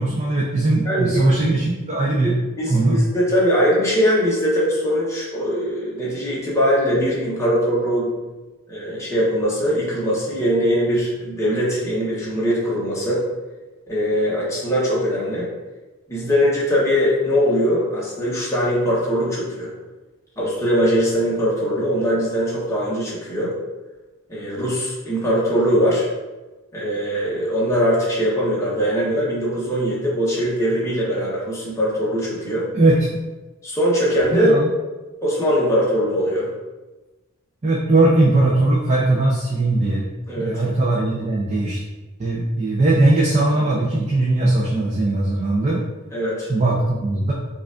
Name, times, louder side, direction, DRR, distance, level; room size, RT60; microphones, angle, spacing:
voice 1, 0.0-2.4 2.7-3.0 32.7-33.1 34.3-34.7 37.6-40.1 40.4-41.8 42.2-45.8 46.5-47.3, right 2 dB, 30° right, -4 dB, 0.4 m, -19 dB
voice 2, 0.8-1.2 2.2-8.1 8.7-13.2 13.9-15.5 16.1-19.7 20.4-23.5 24.3-26.1 26.7-32.7 33.6-34.5 35.2-36.5 40.3-40.6 46.1-46.5, equal, 15° left, -6 dB, 0.9 m, -21 dB
4.7 x 2.4 x 2.4 m, 1.1 s
head